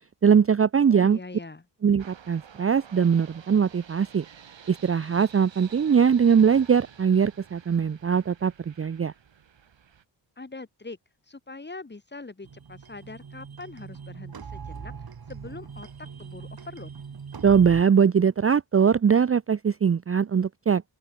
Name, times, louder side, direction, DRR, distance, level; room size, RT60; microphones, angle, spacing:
voice 1, 0.2-1.2 1.8-4.2 4.7-9.1 17.4-20.8, right 7 dB, 30° right, 0.6 m, -21 dB
voice 2, 0.9-1.6 10.4-11.0 11.3-14.9 15.3-16.9, left 3 dB, 20° left, 2.8 m, -42 dB
sound 1, 2.0-10.0, right 8 dB, 70° right, 4.5 m, -50 dB
sound 2, 12.4-17.8, right 6 dB, 50° right, 3.8 m, -41 dB
open air
wide cardioid pair, 115°, 47 cm